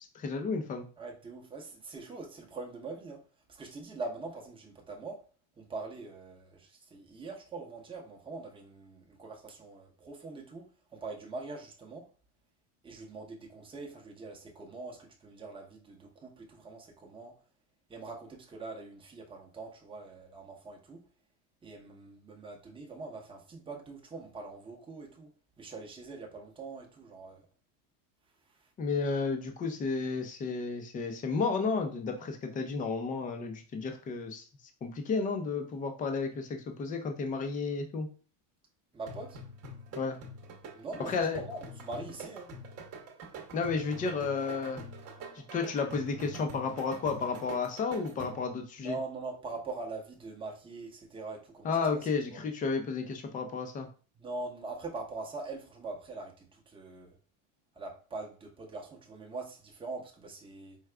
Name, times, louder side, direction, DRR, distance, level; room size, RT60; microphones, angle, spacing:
voice 1, 0.1-0.9 28.8-34.4 34.8-38.1 39.9-40.2 41.1-41.4 43.5-44.8 45.4-49.0 51.6-53.9, left 4 dB, 20° left, 0.5 m, -32 dB
voice 2, 1.0-3.2 3.5-5.2 5.6-10.7 10.9-12.1 12.8-17.3 17.9-21.0 21.6-25.3 25.6-27.4 38.9-39.4 40.7-42.5 48.8-52.4 54.1-57.2 57.8-60.8, right 3 dB, 10° right, 0.7 m, -43 dB
sound 1, 39.1-48.6, right 1 dB, 35° right, 0.9 m, -45 dB
4.8 x 2.3 x 3.3 m
cardioid pair, 145°, 44 cm